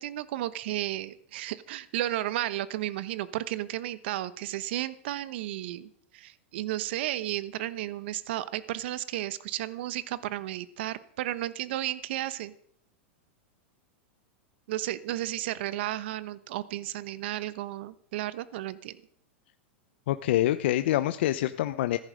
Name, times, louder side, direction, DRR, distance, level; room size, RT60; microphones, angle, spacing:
voice 1, 0.0-12.5 14.7-19.0, right 14 dB, 65° right, 16 dB, 1.0 m, -33 dB
voice 2, 20.1-22.0, left 14 dB, 70° left, 11 dB, 0.7 m, -26 dB
15.5 x 14.0 x 5.2 m, 0.65 s
hypercardioid pair, 110°, 6 cm